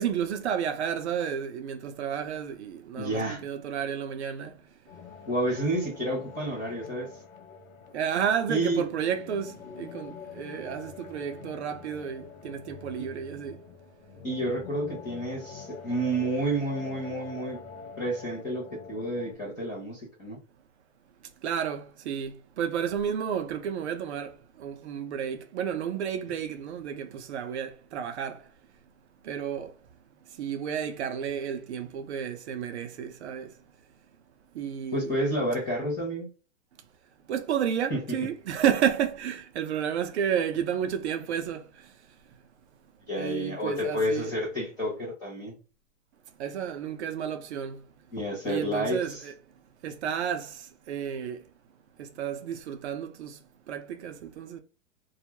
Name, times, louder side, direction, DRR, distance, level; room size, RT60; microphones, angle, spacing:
voice 1, 0.0-4.5 7.9-13.6 21.4-28.4 29.3-29.7 30.4-33.5 34.6-35.2 37.3-41.6 43.2-44.3 46.4-47.8 48.5-49.3 49.8-50.6 50.9-51.4 52.0-53.4 53.7-54.6, right 8 dB, 55° right, 0.5 m, -31 dB
voice 2, 3.0-3.4 5.3-7.1 8.5-8.8 14.2-17.6 18.0-20.4 34.9-36.3 37.9-38.2 43.1-45.5 48.1-49.2, right 1 dB, 10° left, 0.4 m, -30 dB
sound 1, 4.9-19.3, left 6 dB, 80° left, 0.8 m, -46 dB
2.3 x 2.0 x 2.8 m
hypercardioid pair, 140°, 41 cm